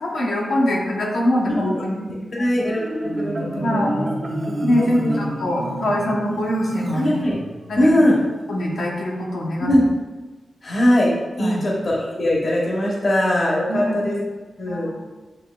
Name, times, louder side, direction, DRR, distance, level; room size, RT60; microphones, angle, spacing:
voice 1, 0.0-2.1 2.4-2.5 3.6-4.1 4.6-7.2 7.7-7.9 8.5-9.7 11.4-11.6 13.7-14.0 14.7-14.9, left 1 dB, 90° left, -4 dB, 1.0 m, -23 dB
voice 2, 1.5-1.8 2.3-2.8 3.2-4.1 4.5-5.2 6.9-7.3 7.8-8.2 9.6-9.9 10.6-11.1 11.4-14.2 14.6-14.9, left 1 dB, 40° left, -3 dB, 0.8 m, -20 dB
Marimba xylophone, 2.7-7.8, right 1 dB, 55° right, 1.0 m, -29 dB
8.0 x 2.9 x 2.3 m, 1.2 s
wide cardioid pair, 160°, 0 cm